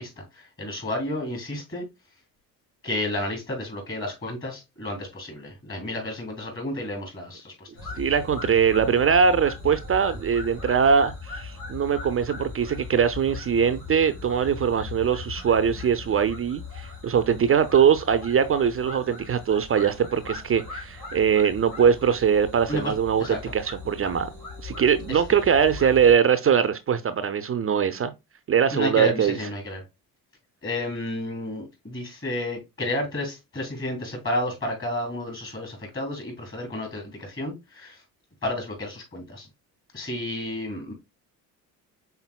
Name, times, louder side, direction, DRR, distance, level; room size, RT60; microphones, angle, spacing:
voice 1, 0.0-1.9 2.8-7.7 22.7-22.9 23.2-23.5 25.1-25.4 28.7-29.8 30.6-38.0 38.4-39.5 39.9-40.9, left 1 dB, 25° left, 2.9 m, -31 dB
sound 1, 7.7-26.1, left 4 dB, 85° left, 3.0 m, -39 dB
voice 2, 8.0-24.3 24.6-28.1 28.5-29.4, right 7 dB, 30° right, 0.5 m, -22 dB
5.6 x 3.9 x 2.2 m
hypercardioid pair, 60°, 45 cm